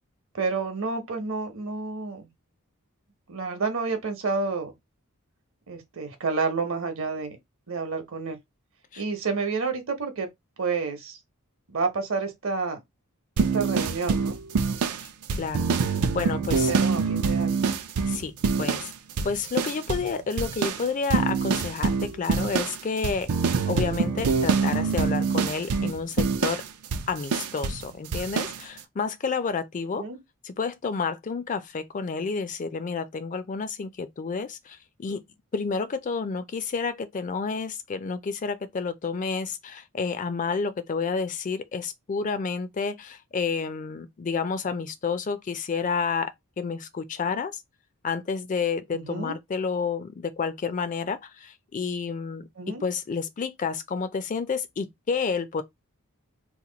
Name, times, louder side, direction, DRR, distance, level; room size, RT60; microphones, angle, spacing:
voice 1, 0.3-2.3 3.3-4.7 5.7-7.4 7.7-8.4 9.0-10.3 10.6-11.2 11.7-12.8 13.4-14.4 16.5-17.6 29.9-30.2 48.9-49.3 52.6-52.8, right 4 dB, 60° right, 0.9 m, -29 dB
sound 1, 13.4-18.9 19.2-20.1 20.4-27.8 28.1-28.6, right 5 dB, 80° right, 0.5 m, -25 dB
voice 2, 15.3-15.7 16.1-16.7 18.1-18.3 18.6-18.9 19.2-23.3 23.7-26.6 27.1-30.0 30.4-35.2 35.5-47.6 48.0-52.5 52.8-55.6, left 5 dB, 35° left, 0.4 m, -30 dB
2.9 x 2.2 x 3.9 m
head